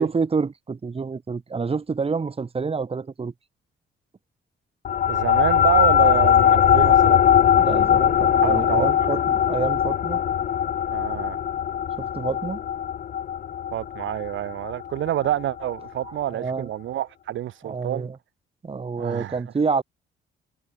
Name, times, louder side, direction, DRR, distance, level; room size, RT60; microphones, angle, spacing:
voice 1, 0.0-3.3 7.5-10.2 12.0-12.6 16.1-16.7 17.6-18.2 18.6-19.8, right 4 dB, 30° right, 2.0 m, -28 dB
sound 1, 4.8-15.6, left 10 dB, 45° left, 0.5 m, -20 dB
voice 2, 5.1-7.3 8.4-9.1 10.9-11.4 13.7-18.1 19.0-19.4, right 13 dB, 75° right, 1.3 m, -27 dB
cardioid pair, 90°, 20 cm